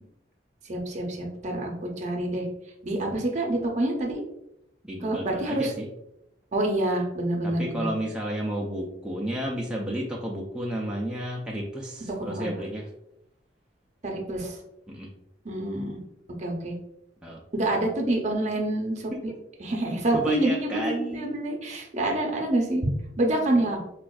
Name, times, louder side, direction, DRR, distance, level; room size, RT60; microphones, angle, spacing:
voice 1, 0.6-2.5 2.8-4.2 5.0-5.7 6.5-7.9 12.2-12.5 14.0-14.6 15.4-16.0 16.4-16.7 17.5-19.1 19.6-23.8, right 1 dB, 40° right, 1 dB, 0.6 m, -27 dB
voice 2, 4.8-5.9 7.4-12.9 14.9-15.1 17.2-17.4 19.1-19.4 19.8-21.5 22.0-22.2 23.5-23.7, equal, 5° right, -3 dB, 0.4 m, -32 dB
4.3 x 2.4 x 2.3 m, 0.82 s
head